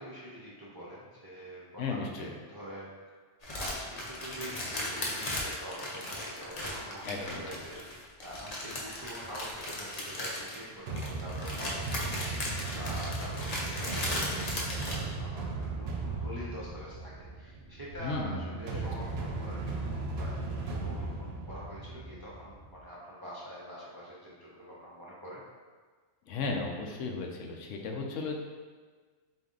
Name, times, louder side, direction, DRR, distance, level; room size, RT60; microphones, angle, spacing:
voice 1, 0.0-2.9 3.5-12.1 12.7-25.4, equal, 30° right, -7 dB, 0.4 m, -45 dB
voice 2, 1.8-2.3 7.1-7.6 18.0-18.4 18.7-19.1 26.3-28.3, left 4 dB, 90° left, 2 dB, 0.9 m, -35 dB
sound 1, 3.4-15.0, left 1 dB, 40° left, 0.7 m, -37 dB
sound 2, 10.9-22.8, right 3 dB, 65° right, 0.8 m, -37 dB
4.0 x 2.7 x 3.7 m, 1.4 s
omnidirectional pair, 1.2 m